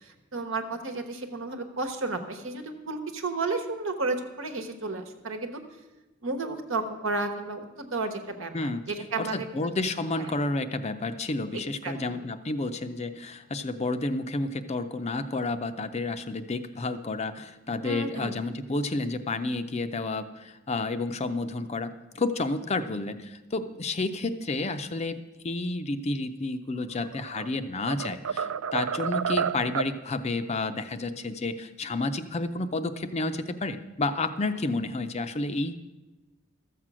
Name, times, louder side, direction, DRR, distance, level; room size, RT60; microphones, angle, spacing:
voice 1, 0.0-5.6 6.2-9.7 10.2-10.3 11.5-12.2 17.8-18.4, right 3 dB, 65° right, 6 dB, 1.2 m, -33 dB
voice 2, 8.5-8.9 9.2-35.8, left 2 dB, 30° left, 10 dB, 0.5 m, -30 dB
sound 1, 27.0-27.5 27.9-30.0, right 7 dB, 85° right, 0.4 m, -30 dB
13.5 x 7.5 x 6.2 m, 1.1 s
head